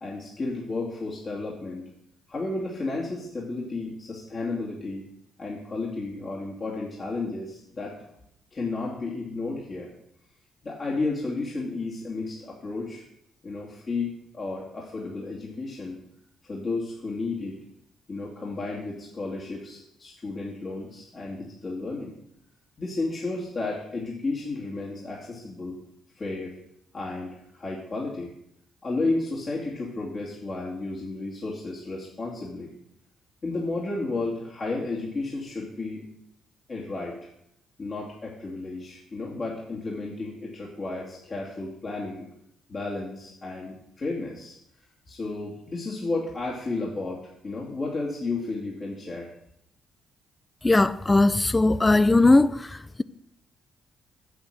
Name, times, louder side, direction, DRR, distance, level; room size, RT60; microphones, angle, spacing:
voice 1, 0.0-1.9 2.3-5.1 5.4-8.0 8.5-9.9 10.6-13.0 13.4-16.0 16.4-17.6 18.1-22.1 22.8-25.8 26.2-26.6 26.9-28.3 28.8-32.7 33.4-36.0 36.7-37.2 37.8-42.3 42.7-44.6 45.1-49.3, left 3 dB, 40° left, 2.4 m, -32 dB
voice 2, 50.6-52.5, left 2 dB, 20° left, 0.5 m, -18 dB
8.1 x 7.1 x 6.6 m
supercardioid pair, 65°, 0 cm